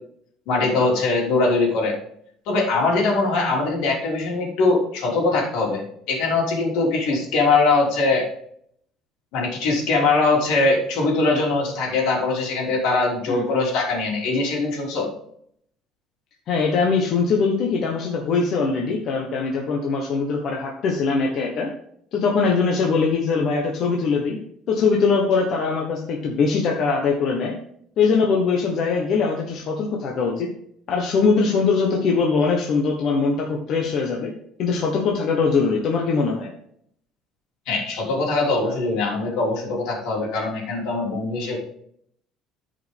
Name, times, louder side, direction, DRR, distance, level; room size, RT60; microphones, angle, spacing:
voice 1, 0.5-1.9 2.5-8.3 9.3-15.1 37.7-41.6, left 3 dB, 70° left, -2 dB, 3.3 m, -22 dB
voice 2, 16.5-21.7 22.1-24.4 24.7-27.5 28.0-30.5 30.9-34.3 34.6-36.5, left 4 dB, 40° left, 0 dB, 1.2 m, -21 dB
13.5 x 5.2 x 3.6 m, 0.67 s
cardioid pair, 180°, 0 cm